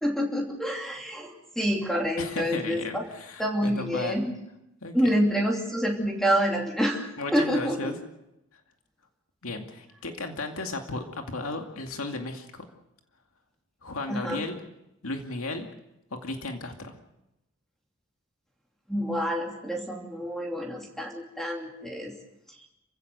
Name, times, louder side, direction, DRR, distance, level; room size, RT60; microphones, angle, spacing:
voice 1, 0.0-3.0 3.4-4.3 4.9-7.9 14.1-14.4 18.9-22.1, equal, ahead, 0 dB, 2.8 m, -27 dB
voice 2, 2.2-4.2 4.8-5.1 7.2-7.9 9.4-12.7 13.8-14.6 15.0-15.7 16.1-17.0, left 2 dB, 90° left, 4 dB, 2.4 m, -34 dB
27.5 x 16.0 x 6.9 m, 0.90 s
head